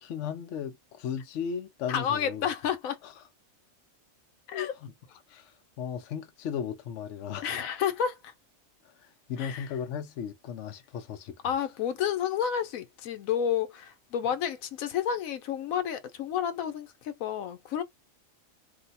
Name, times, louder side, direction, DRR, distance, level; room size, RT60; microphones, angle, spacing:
voice 1, 0.0-2.5 3.0-3.1 4.8-4.9 5.3-7.5 8.8-8.9 9.3-11.4, left 7 dB, 65° left, 0.9 m, -36 dB
voice 2, 1.9-3.0 4.5-4.7 7.4-8.3 9.4-9.7 11.4-17.8, left 8 dB, 85° left, 1.1 m, -30 dB
2.8 x 2.1 x 4.0 m
omnidirectional pair, 1.4 m